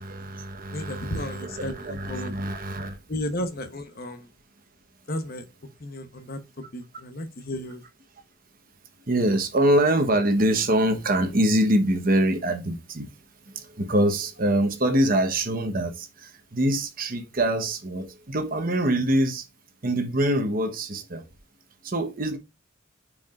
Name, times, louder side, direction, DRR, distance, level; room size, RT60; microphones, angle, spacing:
voice 1, 0.0-3.0 9.1-13.1 13.5-19.5 19.8-21.3 21.8-22.4, right 1 dB, 45° right, 1.1 m, -24 dB
voice 2, 0.7-2.3 3.1-4.3 5.1-5.5 5.8-6.4 6.7-7.8, left 1 dB, 45° left, 1.0 m, -33 dB
9.1 x 4.8 x 2.5 m
head